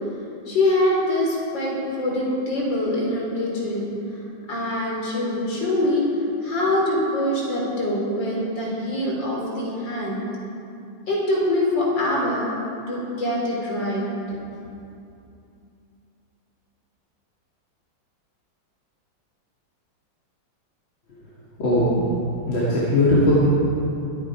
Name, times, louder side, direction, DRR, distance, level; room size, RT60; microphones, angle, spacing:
voice 1, 0.5-3.9 4.5-6.1 6.4-10.2 11.1-12.4 12.9-14.0, left 1 dB, 65° left, -4 dB, 4.6 m, -24 dB
voice 2, 21.6-22.1 22.5-23.3, left 1 dB, 80° left, -9 dB, 3.4 m, -19 dB
23.5 x 9.5 x 4.8 m, 2.7 s
omnidirectional pair, 2.1 m